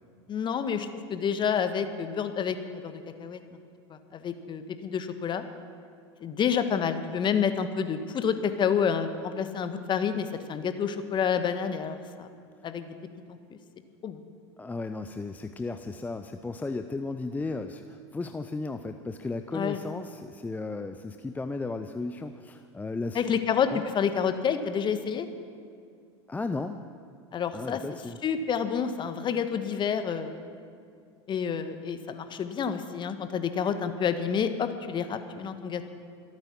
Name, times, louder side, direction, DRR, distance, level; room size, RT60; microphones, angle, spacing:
voice 1, 0.3-2.6 2.8-3.4 3.9-5.4 6.2-12.3 12.6-12.9 13.3-13.6 14.0-14.2 19.5-19.8 23.1-23.7 23.9-25.3 27.3-27.8 28.2-30.4 31.3-35.9, left 7 dB, 30° left, 9 dB, 1.3 m, -29 dB
voice 2, 14.6-23.2 23.7-23.8 26.3-26.8 27.5-28.2, left 3 dB, 10° left, 8 dB, 0.6 m, -35 dB
25.5 x 9.0 x 6.0 m, 2.3 s
hypercardioid pair, 85°, 15 cm